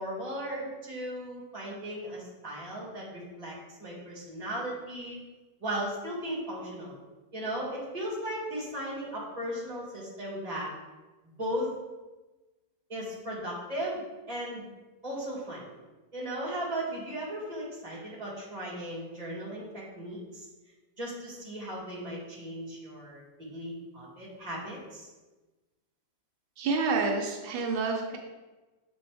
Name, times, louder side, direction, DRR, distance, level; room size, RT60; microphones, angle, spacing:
voice 1, 0.0-3.5 3.8-5.2 5.6-6.9 7.3-10.7 11.4-11.7 12.9-14.7 15.0-15.7 16.1-20.5 21.0-23.2 23.5-25.1, equal, 20° right, -5 dB, 2.0 m, -36 dB
voice 2, 26.6-28.2, right 4 dB, 85° right, 1 dB, 1.5 m, -28 dB
7.0 x 4.6 x 3.4 m, 1.2 s
omnidirectional pair, 2.0 m